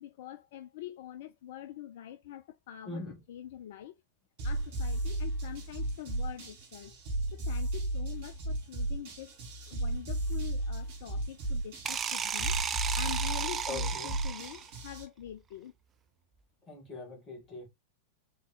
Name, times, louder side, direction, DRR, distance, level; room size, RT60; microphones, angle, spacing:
voice 1, 0.0-3.0 3.3-4.0 4.4-7.0 7.3-9.4 9.7-12.5 12.9-15.7, left 12 dB, 55° left, 0.4 m, -45 dB
voice 2, 2.9-3.2 13.7-14.2 16.7-17.7, left 2 dB, 25° left, 2.1 m, -41 dB
sound 1, 4.4-15.0, right 1 dB, 50° right, 2.2 m, -35 dB
sound 2, 11.8-14.8, right 7 dB, 25° right, 0.4 m, -34 dB
3.8 x 3.4 x 2.6 m
figure-of-eight pair, 90°, 0 cm